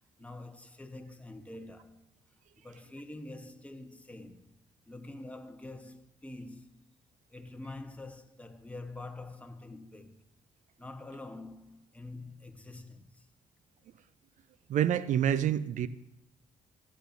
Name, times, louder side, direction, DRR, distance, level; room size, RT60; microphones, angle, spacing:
voice 1, 0.2-2.1 2.6-4.6 4.9-6.8 7.3-10.3 10.8-13.3, left 2 dB, 10° left, 1.0 m, -46 dB
voice 2, 14.7-15.9, right 10 dB, 70° right, 0.5 m, -27 dB
15.0 x 8.5 x 2.6 m
supercardioid pair, 65°, 13 cm